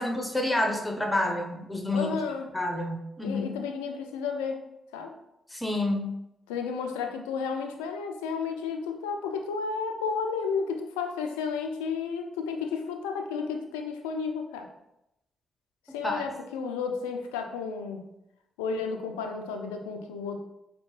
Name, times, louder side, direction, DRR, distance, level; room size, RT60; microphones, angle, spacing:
voice 1, 0.0-2.2 2.5-3.5 5.5-6.1 16.0-16.2, left 1 dB, 10° left, 2 dB, 0.8 m, -28 dB
voice 2, 1.9-2.5 3.2-4.6 4.9-5.1 6.5-14.7 15.9-18.0 18.6-20.4, left 5 dB, 85° left, 4 dB, 0.3 m, -32 dB
4.3 x 2.2 x 3.2 m, 0.85 s
hypercardioid pair, 45°, 0 cm